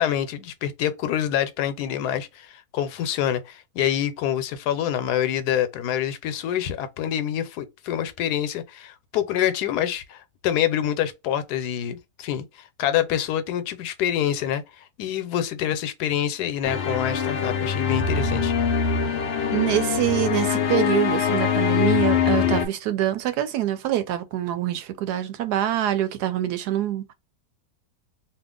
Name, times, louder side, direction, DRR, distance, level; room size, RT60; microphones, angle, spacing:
voice 1, 0.0-12.4 12.8-18.5, left 10 dB, 85° left, 1.2 m, -26 dB
sound 1, 16.6-22.7, left 7 dB, 70° left, 0.6 m, -23 dB
voice 2, 19.5-27.1, right 12 dB, 90° right, 1.1 m, -25 dB
2.8 x 2.4 x 3.6 m
omnidirectional pair, 1.7 m